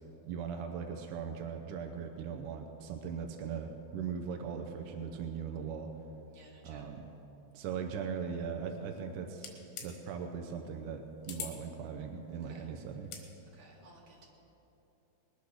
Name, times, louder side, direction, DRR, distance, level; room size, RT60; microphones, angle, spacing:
voice 1, 0.3-5.9 6.6-7.1 7.5-9.5 9.8-13.1, right 6 dB, 80° right, 4 dB, 1.9 m, -39 dB
voice 2, 6.3-6.9 12.5-12.7 13.5-14.3, right 2 dB, 50° right, -3 dB, 3.6 m, -57 dB
sound 1, 9.4-9.9 11.3-11.6 13.0-13.3, left 7 dB, 90° left, 3.6 m, -42 dB
20.0 x 10.0 x 6.4 m, 3.0 s
omnidirectional pair, 4.7 m